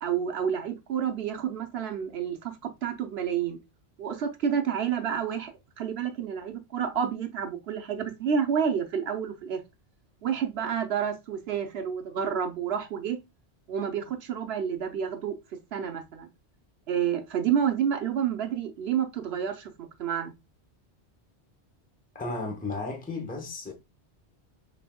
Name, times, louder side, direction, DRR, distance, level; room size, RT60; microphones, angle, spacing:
voice 1, 0.0-3.6 4.0-5.5 5.8-9.6 10.2-13.2 13.7-15.3 15.7-16.3 16.9-20.3, right 8 dB, 70° right, 1.0 m, -29 dB
voice 2, 22.1-23.7, left 3 dB, 10° left, 0.8 m, -34 dB
5.5 x 3.4 x 2.2 m
omnidirectional pair, 1.1 m